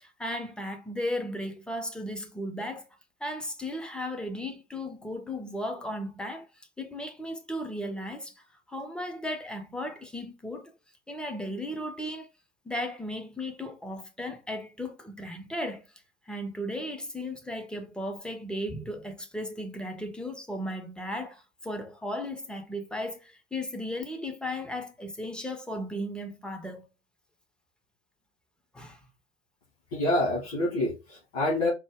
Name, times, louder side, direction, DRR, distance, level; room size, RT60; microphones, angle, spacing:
voice 1, 0.0-2.9 3.2-6.5 6.8-10.7 11.1-12.3 12.7-15.9 16.3-26.8 28.7-29.0, left 1 dB, 5° left, 0.4 m, -35 dB
voice 2, 29.9-31.7, left 1 dB, 65° left, 2.0 m, -27 dB
4.5 x 2.1 x 3.3 m
figure-of-eight pair, 85°, 33 cm